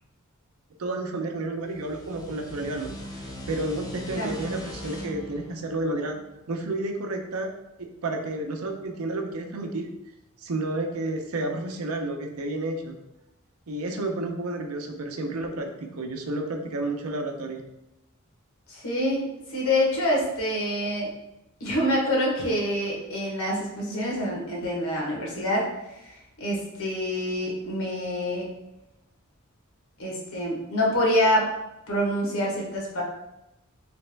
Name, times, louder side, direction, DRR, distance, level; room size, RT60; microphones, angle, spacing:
voice 1, 0.8-6.2 6.5-7.5 7.8-9.9 10.4-12.9 13.7-15.7 15.9-17.6, right 2 dB, 90° right, 3 dB, 0.6 m, -31 dB
sound 1, 1.6-6.9, left 1 dB, 20° left, 0.5 m, -40 dB
voice 2, 18.7-21.1 21.6-28.5 30.0-31.5 31.9-33.0, left 1 dB, 85° left, -3 dB, 1.2 m, -26 dB
3.3 x 3.0 x 3.3 m, 0.94 s
head